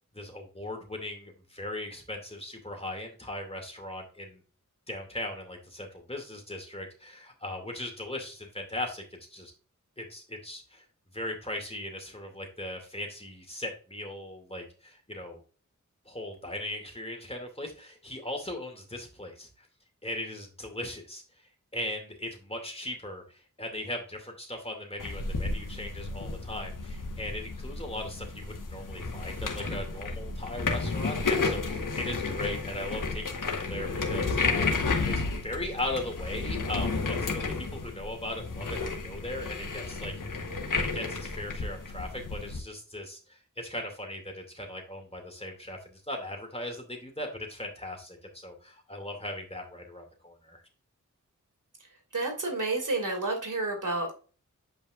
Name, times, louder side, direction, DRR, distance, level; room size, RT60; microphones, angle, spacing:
voice 1, 0.1-4.4 4.9-9.5 10.0-10.8 11.1-15.4 16.1-19.7 20.0-40.4 40.8-50.6, left 1 dB, 20° left, 2 dB, 2.5 m, -38 dB
sound 1, 25.0-42.6, left 3 dB, 80° left, 1.3 m, -32 dB
voice 2, 52.1-54.3, right 2 dB, 75° right, 3 dB, 2.6 m, -30 dB
8.8 x 5.2 x 2.5 m, 0.36 s
wide cardioid pair, 55°, 31 cm